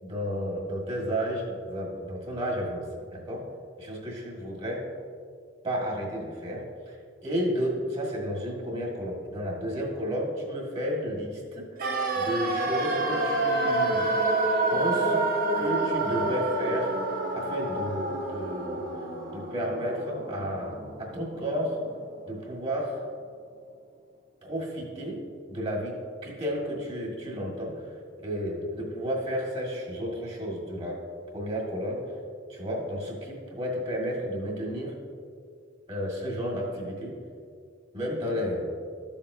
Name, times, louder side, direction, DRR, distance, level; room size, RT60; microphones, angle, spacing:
voice 1, 0.0-3.5 3.8-4.9 5.6-7.0 7.2-14.1 14.7-15.3 15.6-16.9 17.3-19.1 19.3-21.8 22.3-23.1 24.4-25.2 25.5-31.0 31.3-32.0 32.5-35.0 35.9-37.2 37.9-38.7, equal, 35° right, -2 dB, 1.8 m, -32 dB
sound 1, 11.8-21.7 22.0-22.1, right 2 dB, 50° right, 0.9 m, -28 dB
13.5 x 7.0 x 2.8 m, 2.3 s
head